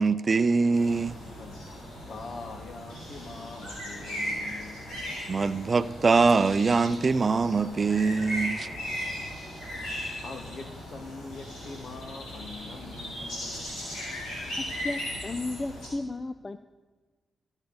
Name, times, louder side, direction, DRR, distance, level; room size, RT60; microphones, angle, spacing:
voice 1, 0.0-1.2 5.3-8.7, right 4 dB, 50° right, 16 dB, 0.4 m, -23 dB
sound 1, 0.7-15.9, equal, 85° left, 3.6 m, -37 dB
voice 2, 1.4-4.8 9.0-9.5 9.9-13.7, left 3 dB, 65° left, 6 dB, 1.2 m, -44 dB
voice 3, 14.8-16.6, left 2 dB, 35° left, 11 dB, 0.4 m, -34 dB
13.5 x 8.0 x 4.0 m, 1.4 s
supercardioid pair, 45°, 0 cm